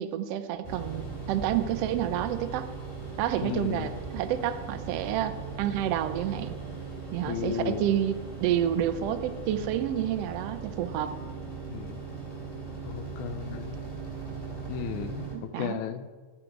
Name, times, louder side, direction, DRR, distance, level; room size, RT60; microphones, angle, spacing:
voice 1, 0.0-2.7 3.2-6.5 7.1-11.1 15.3-15.8, right 10 dB, 75° right, 10 dB, 1.4 m, -29 dB
sound 1, 0.6-15.3, right 4 dB, 10° left, 2.8 m, -39 dB
voice 2, 3.4-3.9 7.3-7.9 11.7-12.0 12.8-13.8 14.7-15.3 15.6-16.1, left 9 dB, 80° left, 11 dB, 2.1 m, -34 dB
13.5 x 10.0 x 4.6 m, 1.4 s
omnidirectional pair, 3.5 m